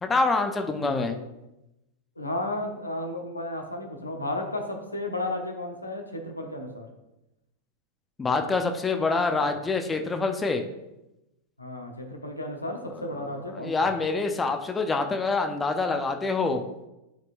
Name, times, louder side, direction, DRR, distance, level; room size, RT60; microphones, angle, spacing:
voice 1, 0.0-1.2 8.2-10.6 13.0-13.1 13.5-16.6, left 3 dB, 15° left, 5 dB, 0.7 m, -26 dB
voice 2, 0.8-1.2 2.2-6.9 9.4-9.5 11.6-13.9, left 1 dB, 85° left, 3 dB, 1.0 m, -33 dB
11.5 x 4.5 x 2.6 m, 0.94 s
figure-of-eight pair, 90°, 0 cm